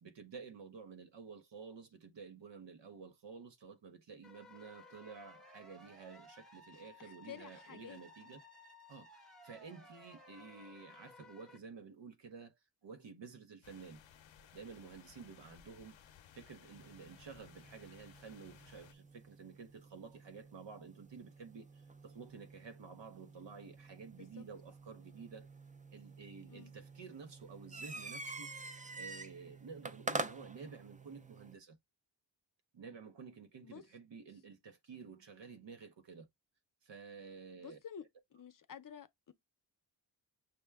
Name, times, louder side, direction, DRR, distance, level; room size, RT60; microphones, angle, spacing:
voice 1, 0.0-8.4 8.9-12.6 12.8-14.0 14.5-16.0 16.3-25.5 25.9-28.5 29.0-31.8 32.7-36.3 36.8-37.8, right 5 dB, 75° right, 1.0 m, -52 dB
sound 1, 4.2-11.6, left 1 dB, ahead, 1.0 m, -58 dB
voice 2, 7.0-8.0 24.2-24.4 26.5-26.7 33.6-33.8 37.6-38.1 38.3-39.3, left 8 dB, 50° left, 0.6 m, -51 dB
sound 2, 13.6-18.9, left 9 dB, 90° left, 0.6 m, -60 dB
sound 3, 16.7-31.6, right 3 dB, 20° right, 0.4 m, -48 dB
6.1 x 2.2 x 3.4 m
wide cardioid pair, 100°, 44 cm